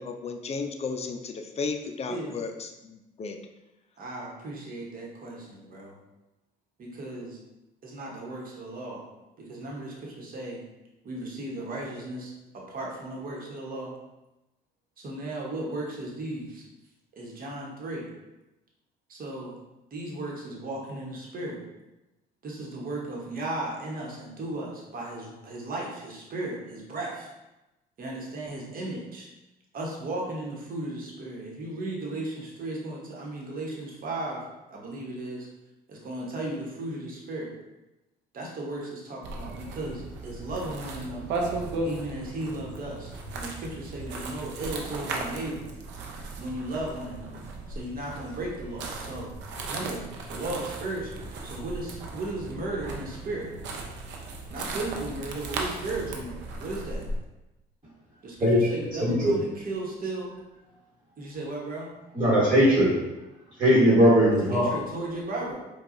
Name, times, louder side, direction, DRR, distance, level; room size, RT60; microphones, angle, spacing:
voice 1, 0.0-3.4, left 4 dB, 35° left, 6 dB, 0.4 m, -34 dB
voice 2, 2.1-2.4 4.0-6.0 6.8-7.4 7.8-9.0 9.5-10.6 11.0-12.3 12.7-13.9 15.0-16.6 17.2-18.1 19.1-19.5 19.9-21.6 22.4-27.3 28.0-29.3 29.7-34.4 34.7-35.5 35.9-37.5 38.3-41.4 41.8-45.7 46.4-47.4 47.7-49.3 49.7-50.0 50.3-53.5 54.5-57.0 58.2-60.3 61.2-61.9 64.5-65.6, right 2 dB, 50° right, -2 dB, 1.1 m, -35 dB
sound 1, 39.2-57.2, right 2 dB, 80° right, 0.6 m, -36 dB
voice 3, 59.0-59.3 62.1-63.0 63.6-64.7, equal, 30° right, -8 dB, 1.4 m, -19 dB
4.6 x 2.3 x 2.6 m, 0.99 s
supercardioid pair, 80°, 18 cm